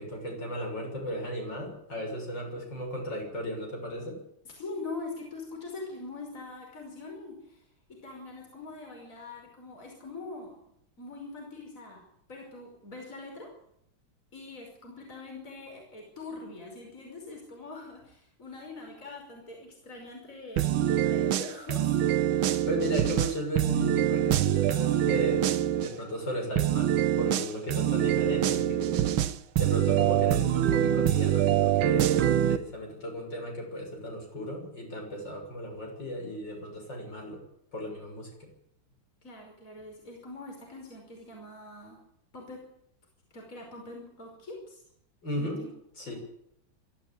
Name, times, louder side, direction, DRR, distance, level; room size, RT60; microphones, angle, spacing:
voice 1, 0.0-4.2 22.7-29.2 29.6-37.4 37.7-38.5 45.2-45.6 46.0-46.1, equal, 55° left, 1 dB, 7.3 m, -35 dB
voice 2, 4.4-10.6 11.0-13.5 14.3-21.9 22.3-22.6 39.2-42.0 42.3-42.6 43.3-44.8 45.4-45.7 46.1-46.2, left 3 dB, 35° left, 0 dB, 5.7 m, -43 dB
sound 1, 20.6-25.9 26.6-32.6, right 11 dB, 70° right, 1.7 m, -25 dB
23.0 x 13.5 x 8.8 m, 0.75 s
omnidirectional pair, 2.3 m